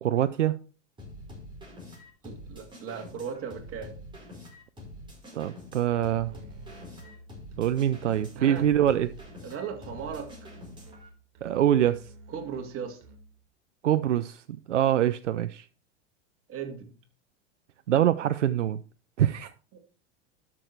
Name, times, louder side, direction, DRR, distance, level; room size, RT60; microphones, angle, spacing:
voice 1, 0.0-0.6 5.3-6.3 7.6-9.1 11.4-12.0 13.8-15.7 17.9-18.8 19.2-19.5, right 11 dB, 90° right, 0.6 m, -24 dB
sound 1, 1.0-11.1, left 1 dB, 15° right, 5.2 m, -46 dB
voice 2, 2.2-4.0 8.3-8.7 9.4-10.5 12.3-13.0 16.5-16.9 19.7-19.8, right 7 dB, 40° right, 2.4 m, -37 dB
Musical instrument, 5.9-13.5, right 1 dB, 55° right, 2.8 m, -50 dB
12.0 x 6.2 x 4.5 m
hypercardioid pair, 95°, 35 cm